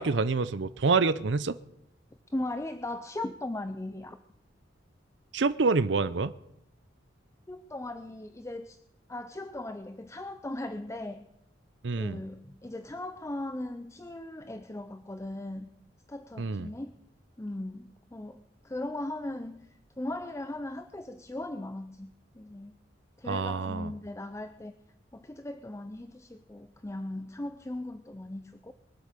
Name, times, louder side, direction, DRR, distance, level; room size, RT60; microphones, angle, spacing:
voice 1, 0.0-1.6 5.3-6.3 11.8-12.2 16.4-16.7 23.3-23.9, right 4 dB, 70° right, 14 dB, 0.6 m, -27 dB
voice 2, 2.3-4.2 7.5-8.8 9.1-11.3 12.0-15.7 16.1-17.0 17.4-22.7 23.2-24.7 25.1-28.7, left 1 dB, 15° left, 10 dB, 0.6 m, -38 dB
22.5 x 8.0 x 6.7 m, 0.82 s
head